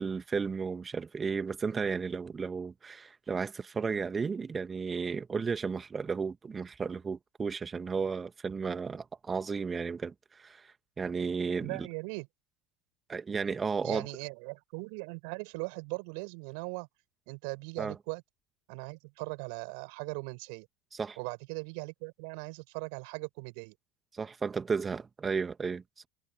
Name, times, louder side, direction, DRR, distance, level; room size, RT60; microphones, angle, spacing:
voice 1, 0.0-11.9 13.1-14.1 17.8-17.9 20.9-21.2 24.1-26.1, right 5 dB, 20° right, 2.6 m, -34 dB
voice 2, 11.6-12.3 13.8-16.9 17.3-18.2 18.7-20.7 21.2-23.7, right 37 dB, 55° right, 6.3 m, -39 dB
figure-of-eight pair, 75°, 0 cm